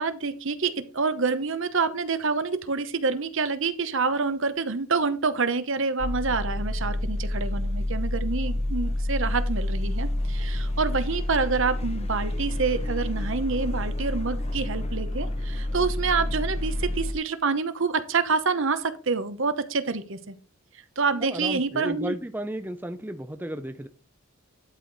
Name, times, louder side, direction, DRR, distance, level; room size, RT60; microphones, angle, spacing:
voice 1, 0.0-20.3 21.0-22.2, right 4 dB, 60° right, 12 dB, 0.9 m, -27 dB
sound 1, 6.0-17.1, left 1 dB, 30° left, 0.8 m, -28 dB
voice 2, 21.2-23.9, right 1 dB, 10° right, 9 dB, 0.5 m, -33 dB
11.5 x 4.8 x 4.0 m, 0.37 s
head